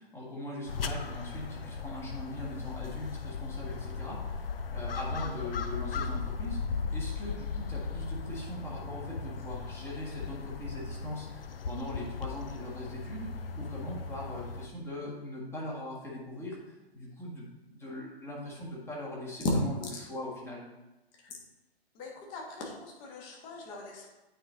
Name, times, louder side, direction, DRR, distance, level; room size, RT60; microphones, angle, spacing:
voice 1, 0.0-16.6 16.9-20.6, left 1 dB, 10° left, -4 dB, 1.5 m, -41 dB
sound 1, 0.7-14.7, left 5 dB, 60° left, 0.6 m, -37 dB
voice 2, 21.9-24.1, left 3 dB, 25° left, -1 dB, 1.5 m, -44 dB
8.8 x 4.4 x 3.9 m, 1.0 s
figure-of-eight pair, 125°, 32 cm